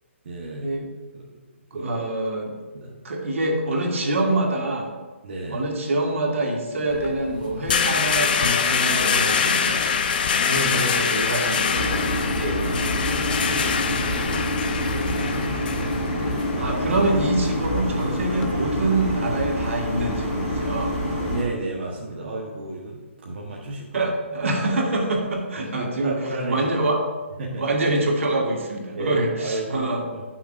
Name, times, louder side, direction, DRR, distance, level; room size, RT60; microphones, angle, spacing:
voice 1, 0.2-0.7 1.1-1.2 1.7-1.9 2.7-3.0 5.2-5.7 10.4-11.1 11.3-11.4 12.3-14.5 14.8-16.6 21.2-24.5 25.6-26.7 27.4-27.7 29.0-30.2, right 2 dB, 50° right, -3 dB, 1.0 m, -33 dB
voice 2, 1.7-2.5 3.0-4.9 5.5-9.8 10.7-12.0 16.6-21.0 23.9-26.1 26.5-27.0 27.6-30.0, right 2 dB, 70° right, 0 dB, 1.5 m, -25 dB
sound 1, 6.9-18.5, left 6 dB, 40° left, 0.5 m, -25 dB
sound 2, 11.7-21.4, equal, 5° left, 1.4 m, -27 dB
9.7 x 5.9 x 2.4 m, 1.3 s
hypercardioid pair, 165°, 7 cm